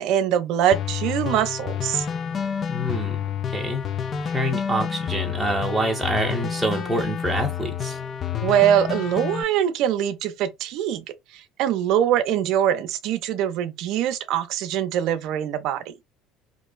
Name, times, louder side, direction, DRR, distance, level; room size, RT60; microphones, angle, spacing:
voice 1, 0.0-2.1 8.4-11.1 11.3-15.9, right 10 dB, 65° right, 0.4 m, -23 dB
sound 1, 0.7-9.4, left 8 dB, 45° left, 0.4 m, -29 dB
voice 2, 2.7-3.2 3.5-3.8 4.2-8.0, right 1 dB, 10° right, 0.7 m, -26 dB
2.5 x 2.3 x 2.2 m
hypercardioid pair, 80°, 0 cm